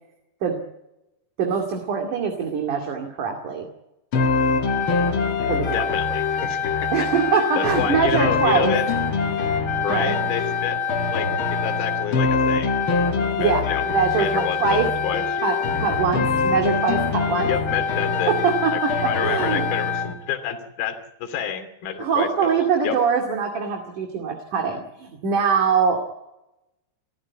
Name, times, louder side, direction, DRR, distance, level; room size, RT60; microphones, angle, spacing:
voice 1, 1.4-3.7 5.5-5.9 6.9-8.7 9.3-10.2 13.4-14.9 15.4-17.5 18.2-19.7 22.0-26.0, right 6 dB, 50° right, 2 dB, 3.5 m, -23 dB
sound 1, 4.1-20.2, left 5 dB, 85° left, 1.1 m, -23 dB
voice 2, 5.6-7.1 7.6-8.9 9.8-10.8 11.1-12.8 13.4-13.8 14.2-15.2 17.5-18.3 19.0-22.9, left 9 dB, 60° left, 8 dB, 4.3 m, -29 dB
28.0 x 14.5 x 8.5 m, 0.92 s
omnidirectional pair, 5.2 m